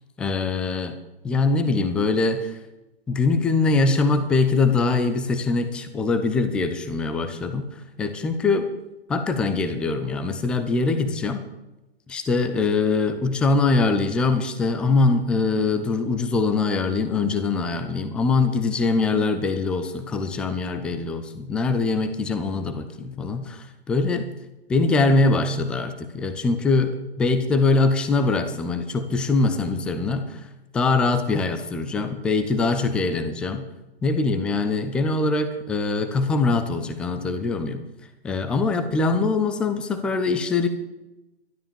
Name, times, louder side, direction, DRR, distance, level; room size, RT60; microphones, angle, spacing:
voice 1, 0.2-0.9 1.2-2.5 3.1-7.7 8.0-8.7 9.1-11.5 12.1-24.2 24.7-30.4 30.7-33.7 34.0-37.8 38.2-40.7, left 3 dB, 5° left, 9 dB, 0.4 m, -23 dB
13.0 x 12.0 x 7.0 m, 0.99 s
figure-of-eight pair, 120°, 31 cm